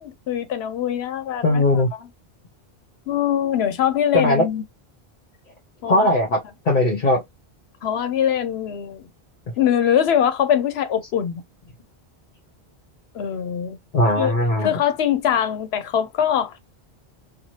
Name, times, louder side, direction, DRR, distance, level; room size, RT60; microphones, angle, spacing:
voice 1, 0.0-1.6 1.9-2.1 3.1-4.6 5.8-6.1 7.8-9.1 9.6-11.4 13.1-13.8 14.2-14.3 14.6-16.6, left 9 dB, 85° left, 0.9 m, -22 dB
voice 2, 1.4-1.9 4.1-4.5 5.9-7.2 13.9-14.7, left 1 dB, 50° left, 1.0 m, -19 dB
2.8 x 2.3 x 3.0 m
omnidirectional pair, 1.1 m